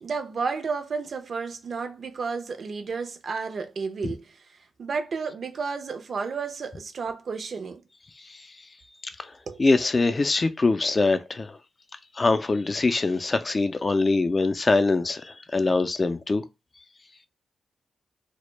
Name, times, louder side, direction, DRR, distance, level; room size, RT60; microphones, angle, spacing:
voice 1, 0.0-4.2 4.8-7.8 9.5-9.6, right 5 dB, 65° right, 0.4 m, -32 dB
voice 2, 9.6-11.6 12.1-16.4, left 3 dB, 40° left, 0.3 m, -23 dB
2.1 x 2.0 x 3.1 m
cardioid pair, 55°, 0 cm